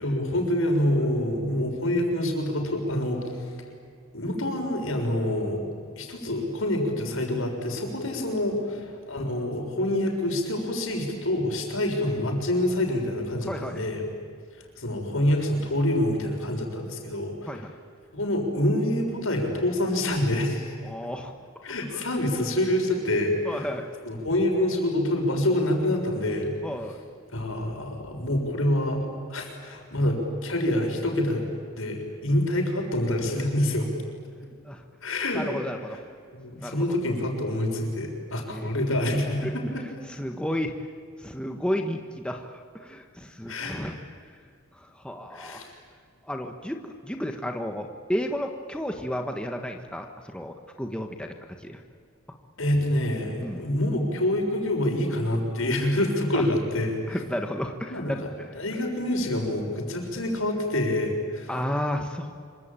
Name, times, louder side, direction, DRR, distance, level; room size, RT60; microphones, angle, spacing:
voice 1, 0.0-3.5 4.1-5.7 6.0-14.1 14.8-17.5 18.1-20.7 21.6-23.7 24.0-26.5 27.3-31.5 31.8-33.9 35.0-35.4 36.3-39.8 43.5-43.8 45.3-45.7 52.6-57.2 57.9-61.5, left 1 dB, 75° left, 2 dB, 6.7 m, -26 dB
voice 2, 13.5-13.8 17.5-17.7 20.8-21.3 21.9-22.0 23.4-23.9 26.6-27.0 34.6-34.8 35.3-36.0 36.6-36.8 38.5-38.7 39.4-39.5 40.1-40.7 41.2-44.0 44.7-45.6 46.2-51.3 51.6-51.8 53.4-53.6 56.3-56.4 57.1-58.2 61.5-62.3, equal, 5° left, 4 dB, 1.4 m, -32 dB
26.5 x 25.0 x 9.0 m, 2.3 s
head